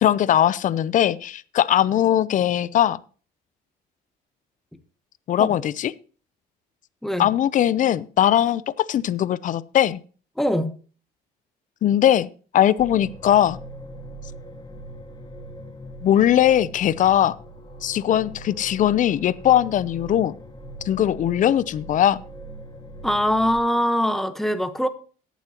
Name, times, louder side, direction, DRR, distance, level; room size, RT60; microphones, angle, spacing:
voice 1, 0.0-3.0 5.3-5.9 7.2-10.0 11.8-12.3 12.5-13.6 16.0-17.3 17.8-20.3 20.8-22.2, left 11 dB, 50° left, 19 dB, 0.6 m, -20 dB
voice 2, 10.4-10.7 23.0-24.9, equal, ahead, 10 dB, 1.1 m, -22 dB
sound 1, 12.8-23.6, right 1 dB, 25° left, 1.7 m, -40 dB
17.5 x 7.3 x 2.9 m, 0.38 s
cardioid pair, 110°, 17 cm